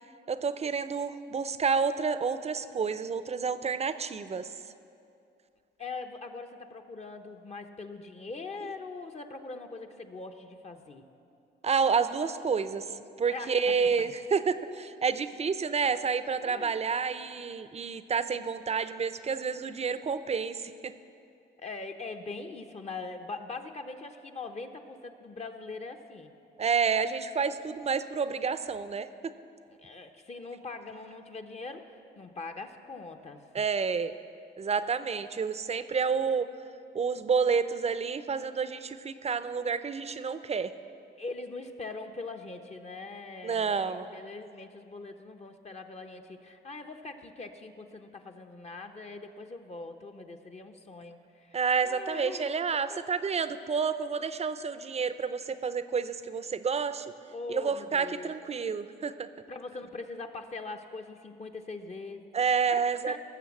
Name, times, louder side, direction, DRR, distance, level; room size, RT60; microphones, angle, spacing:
voice 1, 0.3-4.5 11.6-12.9 13.2-20.9 26.6-29.3 33.5-34.1 34.6-36.5 36.9-40.7 43.4-44.1 51.5-57.1 57.5-59.3 62.3-63.2, right 5 dB, 30° right, 12 dB, 0.6 m, -29 dB
voice 2, 5.8-11.0 13.3-13.8 16.4-16.7 17.7-17.8 21.6-26.3 29.8-33.4 41.2-52.5 52.9-53.0 57.3-58.4 59.5-63.2, left 3 dB, 35° left, 5 dB, 0.9 m, -42 dB
18.5 x 7.1 x 7.1 m, 2.6 s
cardioid pair, 90°, 20 cm